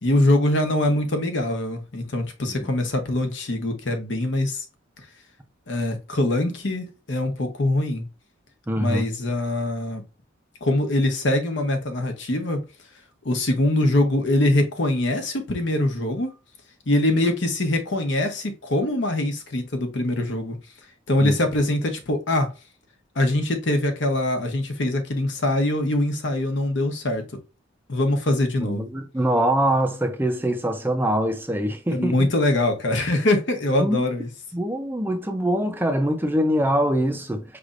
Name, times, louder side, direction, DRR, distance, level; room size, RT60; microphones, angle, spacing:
voice 1, 0.0-4.6 5.7-8.1 8.8-10.0 10.6-12.6 13.2-16.3 16.9-20.6 21.1-22.5 23.2-27.4 27.9-28.9 31.9-34.3, left 1 dB, 65° left, 0.9 m, -23 dB
voice 2, 8.7-9.1 21.2-21.4 28.6-32.3 33.8-34.1 34.5-37.4, right 1 dB, 10° right, 0.5 m, -23 dB
5.2 x 3.3 x 2.4 m
head